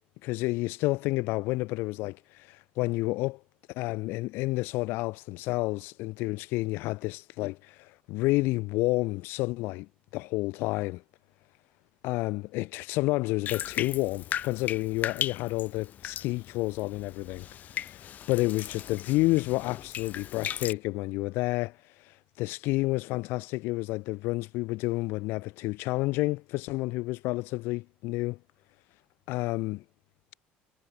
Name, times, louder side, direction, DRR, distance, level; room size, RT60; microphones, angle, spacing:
voice 1, 0.2-3.4 3.7-11.0 12.0-28.4 29.3-29.8, left 21 dB, 80° left, 0.3 m, -30 dB
Bathtub (filling or washing), 13.5-20.7, left 10 dB, 45° left, 1.4 m, -37 dB
cardioid pair, 130°, 4 cm